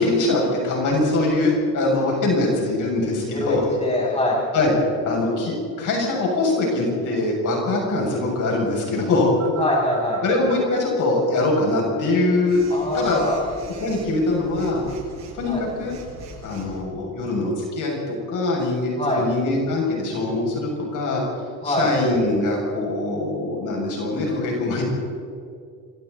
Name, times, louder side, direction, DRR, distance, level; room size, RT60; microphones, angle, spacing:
voice 1, 0.0-3.6 4.5-4.7 5.0-9.3 10.2-12.6 12.9-13.2 13.8-14.8 15.4-15.9 16.4-21.2 21.6-24.8, left 2 dB, 60° left, -2 dB, 7.2 m, -22 dB
voice 2, 3.3-4.4 9.6-10.2 12.7-13.4 15.5-15.6 19.0-19.2 21.6-21.9, left 1 dB, 20° left, -4 dB, 7.5 m, -23 dB
Telephone, 9.4-10.8 12.5-16.8, right 4 dB, 50° right, 6.9 m, -40 dB
27.5 x 24.5 x 4.2 m, 2.3 s
cardioid pair, 130°, 34 cm